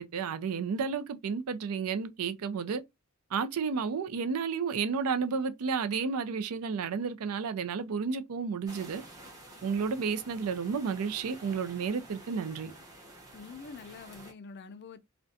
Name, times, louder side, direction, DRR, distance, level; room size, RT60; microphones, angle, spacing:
voice 1, 0.0-2.8 3.3-9.0 9.6-12.7, right 5 dB, 80° right, 0.4 m, -32 dB
sound 1, 8.7-14.3, right 1 dB, 15° right, 0.8 m, -50 dB
voice 2, 13.3-15.0, left 4 dB, 50° left, 0.4 m, -46 dB
2.5 x 2.1 x 2.5 m
head